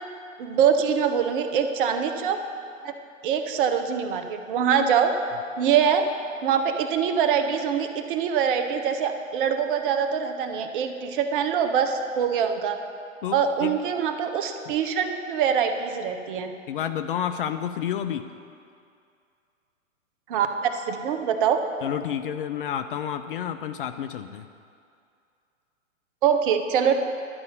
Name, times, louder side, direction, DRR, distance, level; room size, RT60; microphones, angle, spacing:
voice 1, 0.4-2.4 2.8-2.9 3.2-5.1 5.6-6.1 6.4-12.8 13.3-16.5 20.3-21.6 26.2-27.0, right 7 dB, 40° right, 7 dB, 0.9 m, -24 dB
voice 2, 13.2-13.7 16.7-18.2 21.8-24.5, left 9 dB, 45° left, 9 dB, 0.5 m, -30 dB
11.0 x 5.3 x 8.1 m, 2.4 s
figure-of-eight pair, 115°, 39 cm